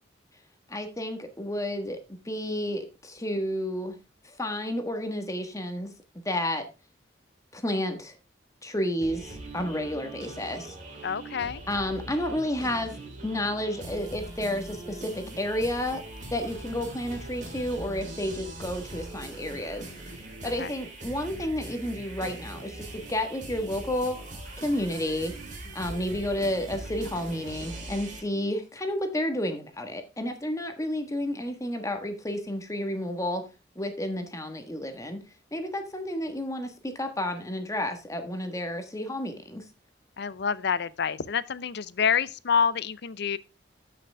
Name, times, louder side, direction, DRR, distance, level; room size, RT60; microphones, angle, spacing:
voice 1, 0.7-4.0 4.4-5.9 6.2-6.7 7.5-8.1 8.6-10.7 11.7-13.0 13.2-16.0 16.3-19.8 20.4-24.2 24.6-25.3 25.7-33.4 33.7-35.2 35.5-39.6, left 1 dB, 20° left, 1.5 m, -31 dB
sound 1, 9.0-28.2, right 1 dB, 45° right, 3.3 m, -41 dB
voice 2, 11.0-11.6 20.6-20.7 40.2-43.4, left 6 dB, 65° left, 0.5 m, -27 dB
13.0 x 6.0 x 3.4 m
head